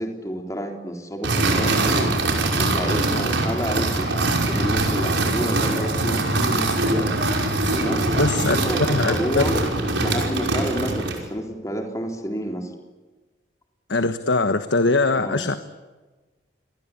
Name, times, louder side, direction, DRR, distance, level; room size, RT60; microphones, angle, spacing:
voice 1, 0.0-2.1 2.5-7.1 7.7-9.7 10.0-12.7 15.2-15.4, equal, 20° left, 2 dB, 3.8 m, -29 dB
sound 1, 1.2-11.3, right 2 dB, 80° right, 5.5 m, -23 dB
voice 2, 8.2-9.4 13.9-15.6, left 3 dB, 80° left, 9 dB, 1.3 m, -22 dB
28.5 x 22.0 x 8.6 m, 1.3 s
head